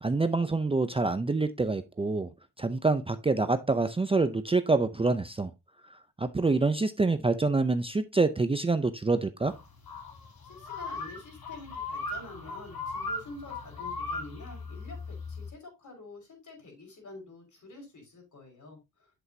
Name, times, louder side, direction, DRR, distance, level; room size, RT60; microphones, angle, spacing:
voice 1, 0.0-2.3 2.6-5.5 6.2-9.5, right 3 dB, 15° right, 0.6 m, -26 dB
sound 1, 9.4-15.5, left 3 dB, 90° left, 3.3 m, -38 dB
voice 2, 10.5-19.1, left 2 dB, 55° left, 5.4 m, -47 dB
8.2 x 7.8 x 2.8 m
cardioid pair, 100°, 35 cm